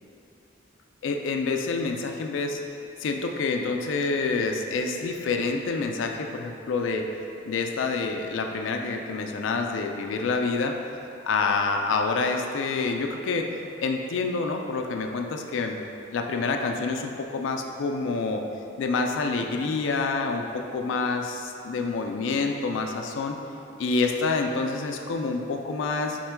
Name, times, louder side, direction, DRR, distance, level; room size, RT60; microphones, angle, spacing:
voice 1, 1.0-2.6 3.0-7.1 7.5-10.8 11.3-13.5 13.8-15.8 16.1-18.4 18.8-23.4 23.8-26.2, left 4 dB, 75° left, 4 dB, 0.3 m, -27 dB
4.3 x 2.2 x 4.4 m, 2.9 s
head